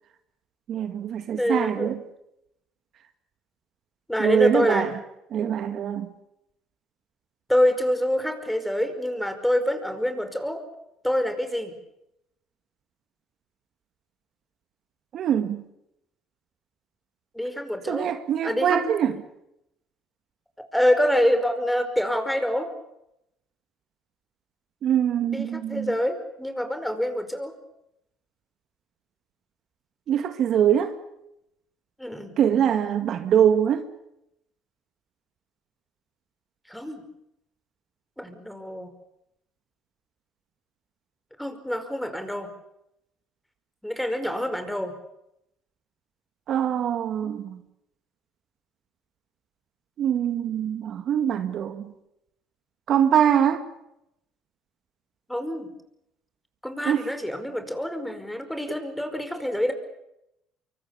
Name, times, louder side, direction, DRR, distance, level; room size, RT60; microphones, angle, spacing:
voice 1, 0.7-2.0 4.2-4.9 5.3-6.1 15.1-15.6 17.9-19.1 24.8-25.9 30.1-30.9 32.4-33.8 46.5-47.6 50.0-51.9 52.9-53.7 56.9-57.1, right 9 dB, 55° right, 2.0 m, -23 dB
voice 2, 1.3-1.9 4.1-4.9 7.5-10.6 11.0-11.7 17.3-18.1 18.4-19.0 20.7-22.7 25.3-27.5 32.0-32.3 36.7-37.0 38.2-38.9 41.4-42.5 43.8-44.9 55.3-55.7 56.6-59.7, equal, 5° left, 5.1 m, -26 dB
25.0 x 24.0 x 7.2 m
supercardioid pair, 90°, 0 cm